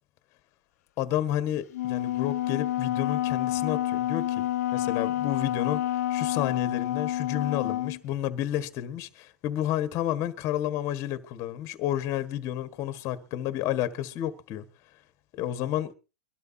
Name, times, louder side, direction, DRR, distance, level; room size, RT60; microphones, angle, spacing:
voice 1, 1.0-4.5 4.7-5.8 6.1-14.7 15.3-15.9, left 12 dB, 35° left, 1.5 m, -30 dB
Wind instrument woodwind instrument, 1.7-8.0, left 13 dB, 65° left, 0.8 m, -28 dB
23.5 x 12.0 x 2.8 m
hypercardioid pair, 130°, 9 cm